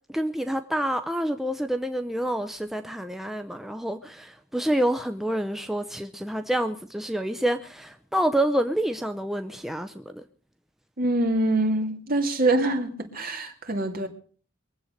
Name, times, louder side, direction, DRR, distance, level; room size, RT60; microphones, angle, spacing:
voice 1, 0.1-10.2, right 1 dB, ahead, 0.6 m, -28 dB
voice 2, 11.0-14.1, right 2 dB, 50° right, 2.4 m, -24 dB
22.5 x 7.9 x 6.5 m
head